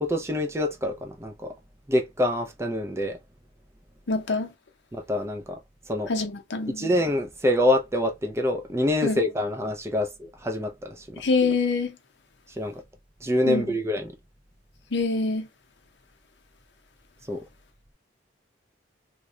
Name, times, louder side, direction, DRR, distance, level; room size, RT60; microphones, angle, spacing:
voice 1, 0.0-1.5 1.9-3.2 4.9-5.6 5.9-6.1 6.8-11.2 12.5-12.8 13.2-14.1 17.3-17.4, left 1 dB, 15° right, 0.4 m, -26 dB
voice 2, 4.1-4.5 6.1-6.9 9.0-9.2 11.2-11.9 13.4-13.7 14.9-15.5, left 3 dB, 65° left, 0.7 m, -25 dB
3.0 x 2.2 x 3.7 m
head